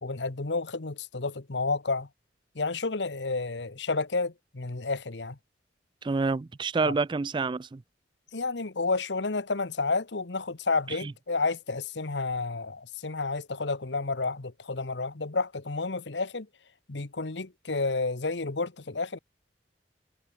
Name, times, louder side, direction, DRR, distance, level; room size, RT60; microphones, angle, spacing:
voice 1, 0.0-2.1 2.5-5.4 6.8-6.9 8.3-16.5 16.9-19.2, left 3 dB, 75° left, 1.2 m, -30 dB
voice 2, 6.0-7.8 10.9-11.1, right 4 dB, 25° right, 0.3 m, -28 dB
head